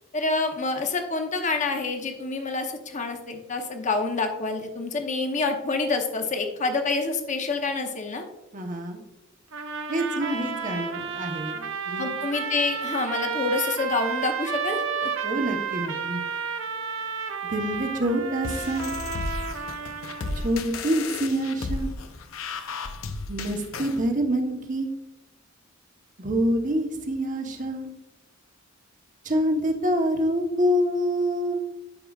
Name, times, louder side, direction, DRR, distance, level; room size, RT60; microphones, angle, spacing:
voice 1, 0.1-8.2 12.0-15.1, left 3 dB, 35° left, 5 dB, 0.8 m, -27 dB
voice 2, 8.5-9.0 9.9-12.2 15.2-16.2 17.5-18.9 20.4-21.9 23.3-24.9 26.2-27.9 29.2-31.5, equal, 40° right, 3 dB, 1.0 m, -26 dB
sound 1, 9.5-20.5, right 6 dB, 75° right, 0.8 m, -32 dB
sound 2, 18.4-24.0, left 3 dB, 80° left, 0.7 m, -34 dB
12.0 x 4.8 x 2.4 m, 0.95 s
head